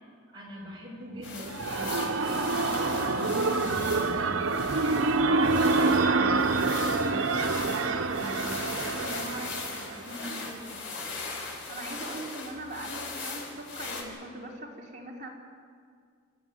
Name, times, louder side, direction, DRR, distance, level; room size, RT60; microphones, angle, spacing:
voice 1, 0.3-3.5 3.8-11.0, equal, 25° right, -4 dB, 7.5 m, -42 dB
sound 1, 1.2-14.0, left 3 dB, 70° left, 5.1 m, -39 dB
sound 2, 1.2-10.0, right 3 dB, 85° right, 1.0 m, -27 dB
voice 2, 10.1-10.4 11.4-15.3, right 1 dB, 40° right, -3 dB, 4.3 m, -41 dB
28.0 x 13.5 x 9.7 m, 2.1 s
head